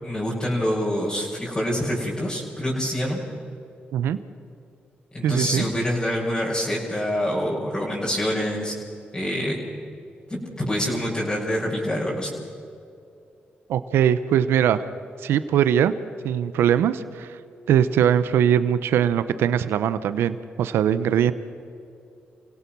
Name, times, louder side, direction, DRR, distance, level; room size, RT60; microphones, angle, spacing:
voice 1, 0.0-3.2 5.1-8.7 9.1-9.6 10.3-12.4, equal, 25° left, -5 dB, 6.2 m, -26 dB
voice 2, 5.2-5.7 13.7-14.8 15.2-15.9 16.2-17.4 17.7-21.3, right 9 dB, 90° right, 13 dB, 0.8 m, -21 dB
28.0 x 17.0 x 6.1 m, 2.6 s
cardioid pair, 65°, 4 cm